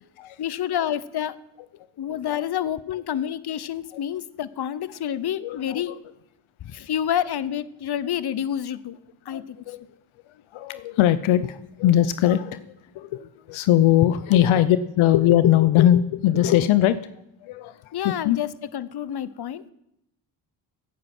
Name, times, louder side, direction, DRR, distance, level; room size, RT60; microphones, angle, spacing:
voice 1, 0.4-1.4 2.0-5.9 6.6-9.0 9.2-9.6 17.9-19.7, left 10 dB, 55° left, 17 dB, 0.9 m, -28 dB
voice 2, 5.4-6.0 9.3-9.8 10.5-12.6 12.9-17.0 17.4-17.8 18.0-18.4, left 12 dB, 80° left, 14 dB, 0.7 m, -20 dB
16.5 x 8.9 x 6.1 m, 0.80 s
supercardioid pair, 50°, 47 cm